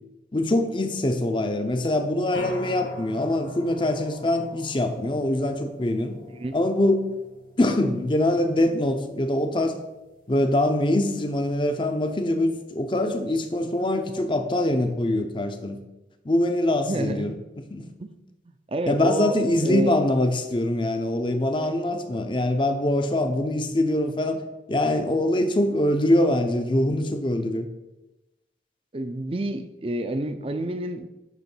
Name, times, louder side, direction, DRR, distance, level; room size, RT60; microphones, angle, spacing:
voice 1, 0.3-6.2 6.5-7.1 7.6-9.8 10.3-15.8 16.2-17.3 17.7-17.9 18.9-24.4 24.7-27.7, left 1 dB, 30° left, 7 dB, 0.6 m, -23 dB
sound 1, 2.3-14.1, left 1 dB, 50° left, 1.1 m, -45 dB
voice 2, 16.9-17.3 18.0-18.1 18.7-19.9 21.6-21.8 28.9-31.1, right 1 dB, 30° right, 9 dB, 0.5 m, -29 dB
9.1 x 3.1 x 6.0 m, 1.0 s
head